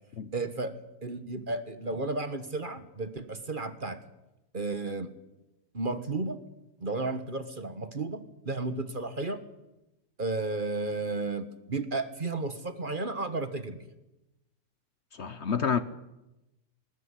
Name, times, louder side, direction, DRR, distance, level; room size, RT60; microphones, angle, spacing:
voice 1, 0.3-0.7 1.0-4.0 4.5-5.2 5.7-6.4 6.8-9.4 10.2-13.8, right 3 dB, 35° right, 11 dB, 1.5 m, -33 dB
voice 2, 15.1-15.8, left 7 dB, 50° left, 13 dB, 1.2 m, -29 dB
21.0 x 19.5 x 9.8 m, 0.96 s
omnidirectional pair, 1.6 m